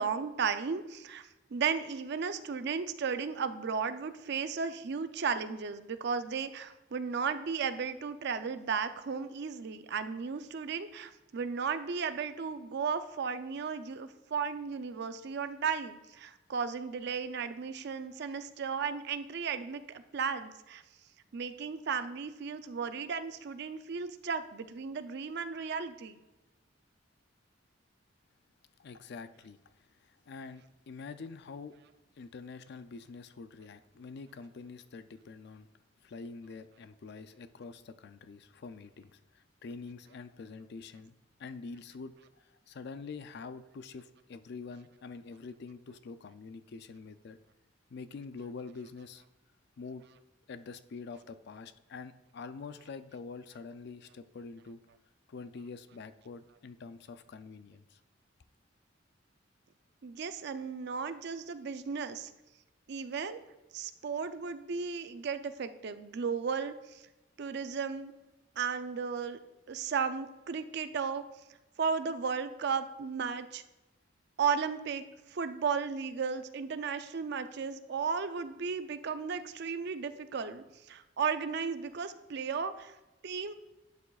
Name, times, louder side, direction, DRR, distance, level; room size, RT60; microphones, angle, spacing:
voice 1, 0.0-20.8 21.3-26.2 60.0-62.3 62.9-63.4 63.7-67.0 67.4-68.1 68.6-69.4 69.7-71.2 71.8-73.6 74.4-82.9 83.2-83.5, right 6 dB, 60° right, 10 dB, 0.5 m, -35 dB
voice 2, 28.8-31.8 32.2-35.7 36.0-47.4 47.9-49.2 49.8-50.0 50.5-54.8 55.3-58.0, left 4 dB, 60° left, 12 dB, 0.4 m, -46 dB
11.0 x 6.9 x 2.4 m, 1.0 s
head